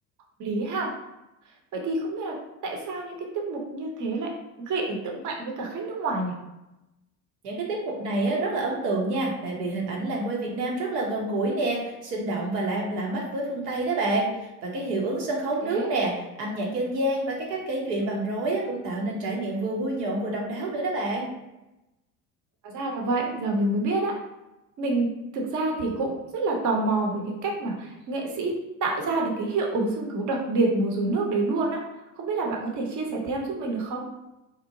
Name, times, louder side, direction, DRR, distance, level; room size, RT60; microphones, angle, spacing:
voice 1, 0.4-0.9 1.7-2.4 2.6-4.3 4.6-6.4 15.6-15.9 22.6-24.1 24.8-25.1 25.3-28.5 28.8-31.8 32.2-34.0, right 2 dB, 40° right, 0 dB, 0.7 m, -27 dB
voice 2, 7.4-14.3 14.6-16.1 16.4-21.3, right 2 dB, 80° right, -2 dB, 0.8 m, -28 dB
2.8 x 2.1 x 2.5 m, 0.95 s
hypercardioid pair, 60°, 48 cm